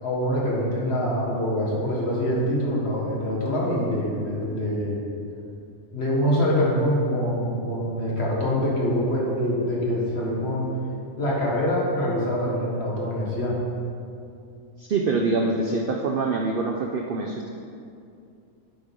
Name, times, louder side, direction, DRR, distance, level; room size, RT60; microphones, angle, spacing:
voice 1, 0.0-5.0 5.9-10.7 11.2-13.6, equal, 55° left, -4 dB, 1.8 m, -25 dB
voice 2, 14.8-17.5, right 3 dB, 60° right, 2 dB, 0.5 m, -25 dB
8.0 x 5.0 x 5.3 m, 2.5 s
omnidirectional pair, 1.4 m